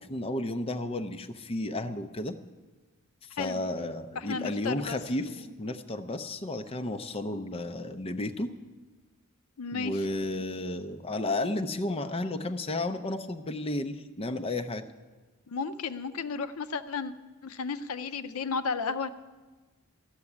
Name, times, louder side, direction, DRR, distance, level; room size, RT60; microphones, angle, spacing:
voice 1, 0.0-2.4 3.3-8.5 9.7-14.8, left 2 dB, 25° left, 7 dB, 0.6 m, -33 dB
voice 2, 4.3-5.0 9.6-10.0 15.5-17.1 17.4-19.1, left 5 dB, 75° left, 12 dB, 0.6 m, -33 dB
13.0 x 7.0 x 9.7 m, 1.3 s
head